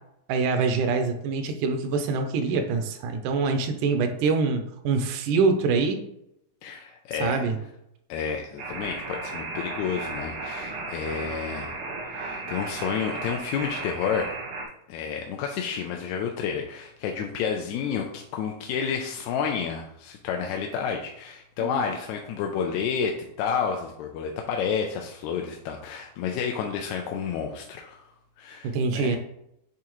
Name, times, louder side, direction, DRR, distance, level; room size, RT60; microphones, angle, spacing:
voice 1, 0.3-6.0 7.2-7.6 21.6-21.7 28.6-29.2, right 4 dB, 80° right, 6 dB, 2.2 m, -25 dB
voice 2, 6.6-7.5 8.1-11.8 12.1-14.3 14.9-28.0 28.4-29.2, left 7 dB, 80° left, 2 dB, 1.8 m, -30 dB
sound 1, 8.6-14.6, right 3 dB, 60° right, 1.3 m, -35 dB
8.4 x 3.7 x 3.0 m, 0.80 s
omnidirectional pair, 3.6 m